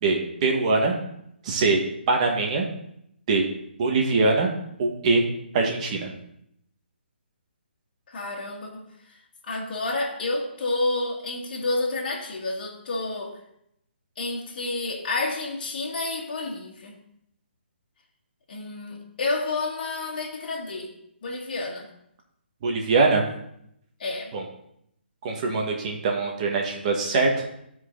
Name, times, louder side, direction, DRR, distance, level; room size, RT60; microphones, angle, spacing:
voice 1, 0.0-1.0 1.4-1.8 2.1-2.7 3.3-3.4 3.8-4.5 4.8-5.2 5.5-6.1 22.6-23.2 24.3-24.4 25.2-27.4, right 3 dB, 40° right, 1 dB, 1.7 m, -22 dB
voice 2, 8.1-8.8 9.4-13.4 14.2-16.9 18.5-20.9 21.2-21.9 24.0-24.3, left 2 dB, 50° left, -3 dB, 1.8 m, -29 dB
14.0 x 4.8 x 3.9 m, 0.74 s
hypercardioid pair, 150°, 6 cm